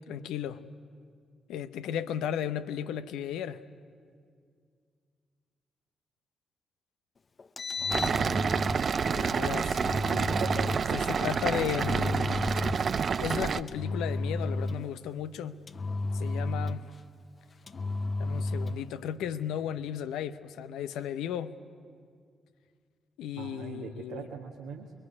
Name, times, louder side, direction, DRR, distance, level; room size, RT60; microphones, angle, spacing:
voice 1, 0.1-0.7 1.5-3.6 9.0-9.8 10.9-12.4 13.2-15.6 16.1-16.8 18.2-21.6 23.2-24.3, left 9 dB, 80° left, 0.7 m, -35 dB
Engine, 7.4-8.9 9.7-10.9 11.7-13.0 13.7-15.0 15.7-17.0 17.7-18.9, left 2 dB, 45° left, 0.7 m, -33 dB
sound 1, 7.9-13.6, right 6 dB, 55° right, 0.6 m, -28 dB
voice 2, 10.1-10.7 23.4-24.9, right 6 dB, 85° right, 1.6 m, -40 dB
25.0 x 22.0 x 9.8 m
hypercardioid pair, 45°, 0 cm